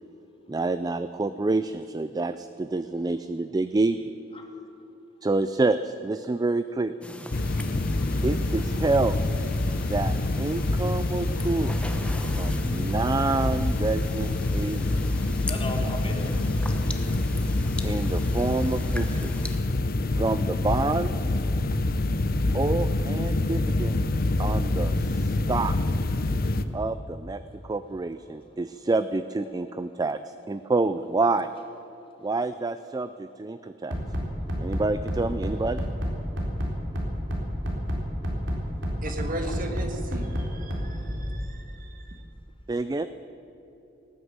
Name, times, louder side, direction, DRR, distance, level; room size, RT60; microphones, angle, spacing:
voice 1, 0.5-4.1 5.2-7.0 8.2-9.2 9.9-11.8 12.4-15.0 17.8-19.3 20.1-21.2 22.5-24.1 24.4-25.8 26.7-31.5 32.2-33.9 34.6-35.8 42.7-43.1, right 3 dB, 20° right, 11 dB, 0.3 m, -28 dB
sound 1, 7.0-19.6, left 1 dB, 5° left, 0.9 m, -40 dB
sound 2, 7.3-26.6, left 2 dB, 50° left, 0.7 m, -26 dB
voice 2, 15.4-16.4 28.3-28.6 29.4-29.5 29.9-30.0 39.0-39.8 40.5-41.6, left 2 dB, 30° left, 3 dB, 1.7 m, -41 dB
Bass drum, 33.9-41.3, equal, 80° right, 3.7 m, -29 dB
voice 3, 39.0-42.2, right 1 dB, 45° right, 4 dB, 1.6 m, -37 dB
18.0 x 9.7 x 8.0 m, 3.0 s
head